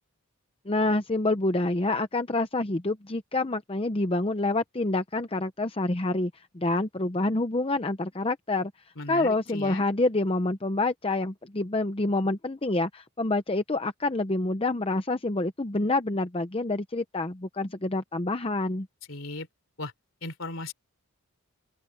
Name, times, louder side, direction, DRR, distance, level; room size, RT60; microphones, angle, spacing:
voice 1, 0.7-8.7 9.1-18.9, left 2 dB, 25° left, 0.7 m, -27 dB
voice 2, 8.9-9.8 19.1-19.5 19.8-19.9 20.2-20.7, left 2 dB, 60° left, 3.5 m, -36 dB
open air
head